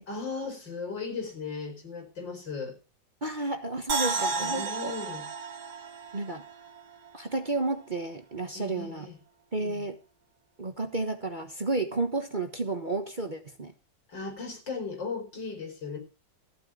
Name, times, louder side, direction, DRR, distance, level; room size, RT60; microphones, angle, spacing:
voice 1, 0.1-2.8 4.4-5.3 8.5-9.2 9.6-9.9 14.1-16.0, left 4 dB, 85° left, 3 dB, 5.3 m, -37 dB
voice 2, 3.2-4.9 6.1-6.4 7.1-9.1 9.5-10.0 10.6-13.7, right 2 dB, 30° right, 6 dB, 1.2 m, -31 dB
sound 1, 3.9-7.1 7.4-7.5, right 4 dB, 60° right, 2.2 m, -32 dB
14.5 x 5.8 x 9.3 m, 0.33 s
omnidirectional pair, 1.9 m